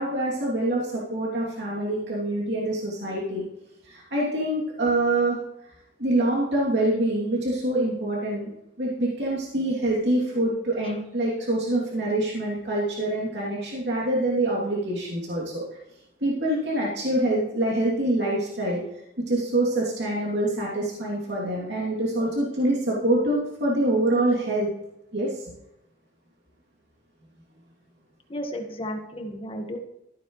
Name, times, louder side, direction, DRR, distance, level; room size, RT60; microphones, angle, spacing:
voice 1, 0.0-3.4 3.8-5.4 6.0-15.6 16.2-18.8 19.3-24.7 25.1-25.4, right 1 dB, 65° right, -5 dB, 2.9 m, -25 dB
voice 2, 28.3-29.8, equal, 30° left, 3 dB, 1.5 m, -33 dB
14.5 x 9.3 x 3.2 m, 0.86 s
head